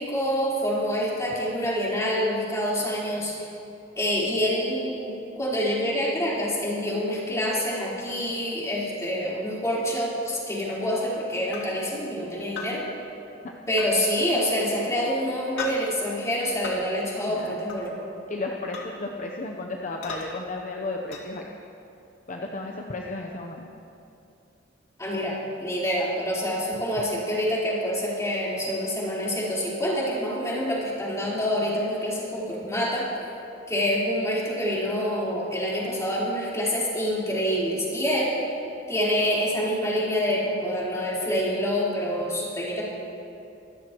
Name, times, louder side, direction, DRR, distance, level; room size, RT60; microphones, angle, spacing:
voice 1, 0.0-3.5 4.0-12.8 13.7-17.9 25.0-33.1 33.7-38.3 38.9-42.8, equal, 15° left, -7 dB, 4.1 m, -26 dB
sound 1, 11.5-11.7 12.6-12.7 13.8-13.9 15.6-15.8 16.6-16.8 17.7-17.9 18.7-18.9 20.0-20.3 21.1-21.2, left 5 dB, 80° left, 2.2 m, -35 dB
voice 2, 17.3-17.6 18.3-21.5 22.3-23.7, left 2 dB, 45° left, 1 dB, 0.8 m, -33 dB
25.0 x 14.0 x 3.0 m, 2.7 s
head